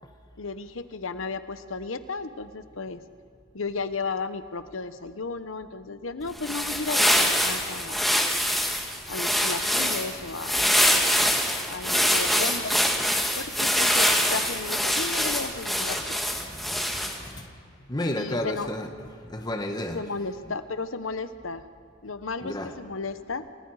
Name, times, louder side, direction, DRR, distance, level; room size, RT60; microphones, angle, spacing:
voice 1, 0.4-3.1 3.5-8.0 9.1-10.7 11.7-12.8 13.3-16.2 18.2-18.7 19.9-21.7 22.0-23.4, left 4 dB, 75° left, 11 dB, 1.0 m, -34 dB
sound 1, 6.3-17.3, equal, ahead, 2.0 m, -24 dB
voice 2, 16.9-17.5 17.9-18.9 19.2-20.0 22.4-22.7, left 1 dB, 20° left, 4 dB, 1.3 m, -31 dB
29.0 x 19.5 x 4.9 m, 2.3 s
head